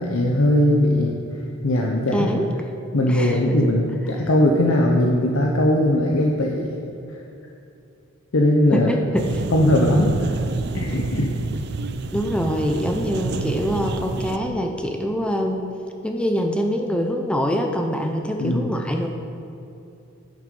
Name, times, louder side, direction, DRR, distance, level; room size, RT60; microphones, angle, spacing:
voice 1, 0.0-2.3 2.9-6.7 7.1-7.2 8.3-8.9 9.5-10.4 10.7-11.3 18.4-18.7, left 1 dB, 85° left, -1 dB, 0.8 m, -20 dB
voice 2, 2.1-2.5 3.1-3.6 8.7-9.4 12.1-15.6 16.0-19.1, equal, 5° left, 2 dB, 0.5 m, -24 dB
sound 1, 9.2-14.4, right 3 dB, 55° right, 0.4 m, -28 dB
10.0 x 6.3 x 5.3 m, 2.7 s
head